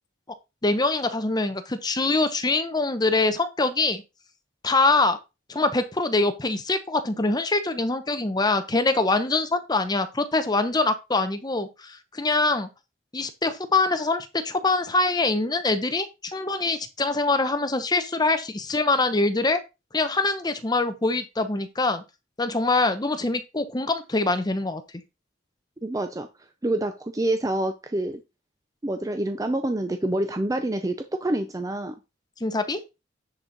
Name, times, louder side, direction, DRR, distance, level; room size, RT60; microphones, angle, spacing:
voice 1, 0.6-4.0 4.6-5.2 5.5-12.7 13.1-19.6 19.9-22.0 22.4-24.8 32.4-32.8, left 3 dB, 20° left, 9 dB, 0.8 m, -24 dB
voice 2, 25.8-26.3 26.6-28.2 28.8-32.0, right 1 dB, 20° right, 7 dB, 0.5 m, -27 dB
9.9 x 4.4 x 3.9 m, 0.25 s
head